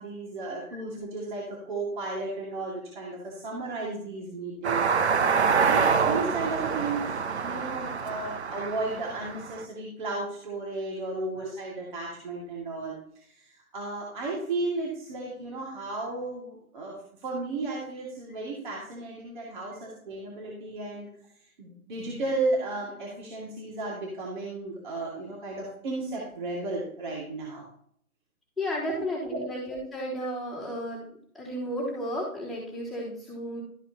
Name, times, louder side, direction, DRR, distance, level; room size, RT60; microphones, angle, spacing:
voice 1, 0.0-21.1 21.4-27.6 28.9-29.0 29.3-29.4, right 3 dB, 35° right, -3 dB, 2.3 m, -34 dB
sound 1, 4.6-9.6, right 5 dB, 50° right, 0.9 m, -26 dB
voice 2, 11.1-11.4 28.6-31.1 31.3-33.6, equal, ahead, -11 dB, 3.3 m, -33 dB
13.0 x 8.6 x 2.9 m, 0.64 s
figure-of-eight pair, 140°, 44 cm